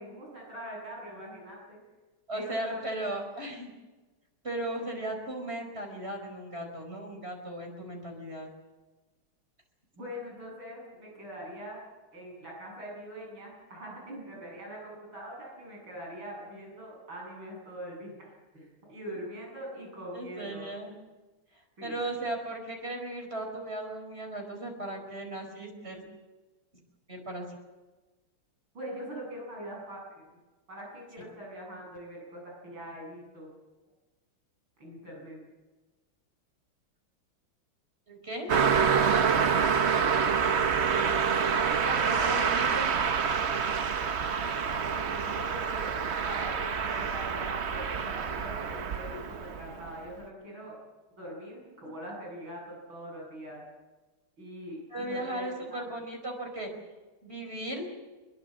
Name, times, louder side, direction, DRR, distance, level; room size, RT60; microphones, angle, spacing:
voice 1, 0.0-1.8 2.3-2.8 10.0-11.8 12.1-20.7 21.8-22.0 28.7-30.3 30.7-33.5 34.8-35.5 40.9-42.6 44.8-45.9 46.2-50.8 51.2-53.6 54.4-55.5, equal, 70° right, -2 dB, 9.0 m, -42 dB
voice 2, 2.3-3.7 4.4-8.5 20.1-21.0 21.8-26.0 27.1-27.5 38.1-38.5 39.0-39.3 41.7-42.9 51.8-51.9 54.9-56.7 57.2-57.9, right 1 dB, 30° right, 3 dB, 5.2 m, -36 dB
Car passing by, 38.5-49.9, right 6 dB, 50° right, 0.8 m, -27 dB
22.5 x 21.5 x 7.5 m, 1.2 s
omnidirectional pair, 2.3 m